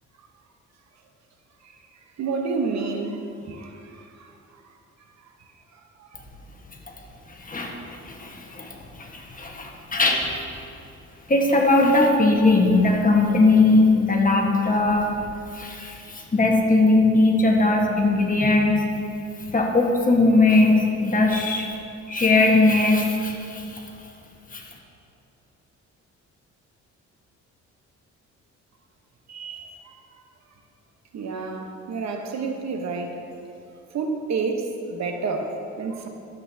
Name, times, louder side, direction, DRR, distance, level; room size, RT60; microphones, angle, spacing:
voice 1, 2.2-4.3 4.6-4.7 5.4-6.2 29.3-29.9 31.1-33.2 33.9-36.1, right 4 dB, 65° right, 4 dB, 1.0 m, -30 dB
voice 2, 7.3-10.3 11.3-15.2 15.5-18.8 19.4-21.7 22.1-23.8 24.5-24.6, left 2 dB, 25° left, 0 dB, 1.4 m, -20 dB
12.5 x 8.0 x 2.8 m, 2.7 s
cardioid pair, 90°, 30 cm